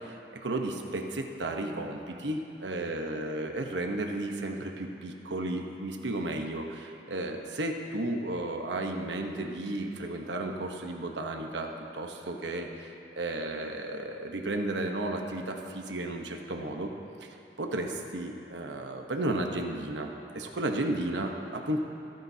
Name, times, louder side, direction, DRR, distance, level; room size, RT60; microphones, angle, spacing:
voice 1, 0.0-16.9 17.2-21.8, right 2 dB, 85° right, 3 dB, 1.0 m, -33 dB
27.0 x 10.5 x 2.8 m, 2.7 s
head